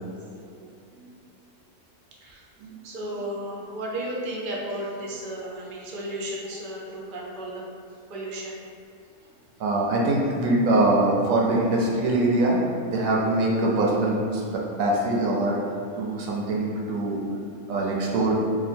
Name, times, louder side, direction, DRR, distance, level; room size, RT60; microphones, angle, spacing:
voice 1, 0.5-0.9 2.2-2.4 2.8-7.6 8.1-8.6, right 1 dB, 55° right, -4 dB, 0.5 m, -34 dB
voice 2, 9.6-12.6 12.9-15.6 16.0-17.2 17.7-18.3, right 2 dB, 70° right, -2 dB, 1.0 m, -23 dB
2.8 x 2.4 x 4.2 m, 2.5 s
omnidirectional pair, 1.6 m